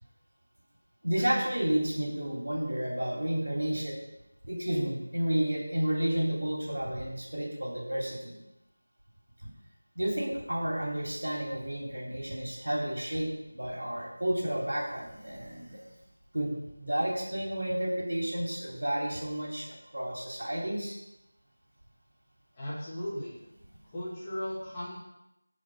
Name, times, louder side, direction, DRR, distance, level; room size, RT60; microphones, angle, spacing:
voice 1, 1.0-4.0 4.4-8.3 9.9-15.8 16.3-21.0, right 1 dB, 70° right, -1 dB, 3.1 m, -31 dB
voice 2, 22.5-23.4 23.9-25.0, equal, 15° left, -10 dB, 2.3 m, -36 dB
14.0 x 5.1 x 4.8 m, 0.90 s
figure-of-eight pair, 170°, 0 cm